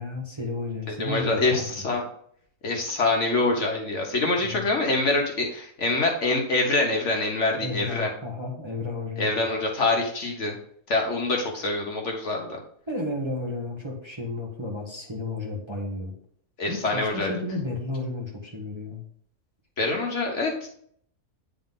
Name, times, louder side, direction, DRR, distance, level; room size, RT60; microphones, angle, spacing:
voice 1, 0.0-1.6 4.4-4.7 7.6-9.3 12.9-16.1 16.7-19.0, left 2 dB, 20° right, -2 dB, 1.2 m, -32 dB
voice 2, 0.9-2.0 2.6-8.1 9.2-10.6 10.9-12.5 16.6-17.3 19.8-20.7, left 2 dB, 55° left, 1 dB, 1.4 m, -25 dB
9.2 x 3.8 x 3.7 m, 0.63 s
omnidirectional pair, 1.5 m